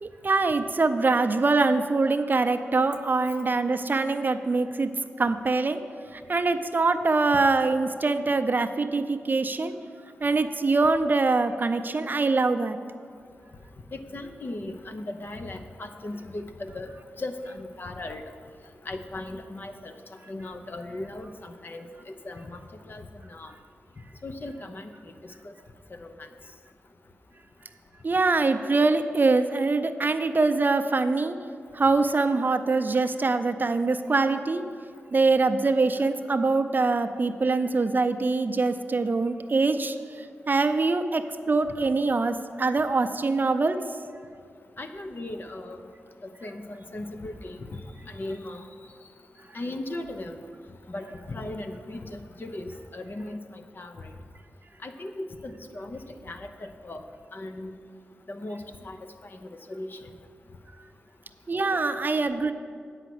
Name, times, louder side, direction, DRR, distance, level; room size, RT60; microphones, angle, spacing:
voice 1, 0.0-4.9 5.2-5.8 6.1-9.7 10.2-12.8 28.0-31.4 31.7-34.6 35.1-40.0 40.5-43.8 61.5-62.5, right 3 dB, 45° right, 9 dB, 0.6 m, -24 dB
voice 2, 13.9-16.9 17.2-18.2 18.8-20.0 20.3-22.6 22.9-23.0 23.3-23.5 24.2-24.9 25.4-25.5 26.0-26.3 44.8-45.8 46.4-48.6 49.5-50.4 50.9-54.1 54.8-57.0 57.3-57.7 58.3-59.0 59.3-60.0, left 2 dB, 45° left, 7 dB, 0.8 m, -37 dB
8.2 x 5.7 x 7.8 m, 2.2 s
cardioid pair, 45°, 5 cm